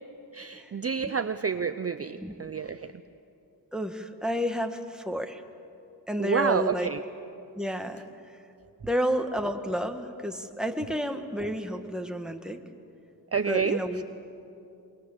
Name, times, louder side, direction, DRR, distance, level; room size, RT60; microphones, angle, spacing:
voice 1, 0.3-3.0 6.2-7.0 13.3-14.0, right 6 dB, 35° right, 11 dB, 0.6 m, -29 dB
voice 2, 3.7-5.4 6.1-6.9 7.5-8.4 8.8-12.6 13.5-14.0, equal, ahead, 5 dB, 1.6 m, -31 dB
25.0 x 22.5 x 7.2 m, 2.8 s
wide cardioid pair, 75°, 41 cm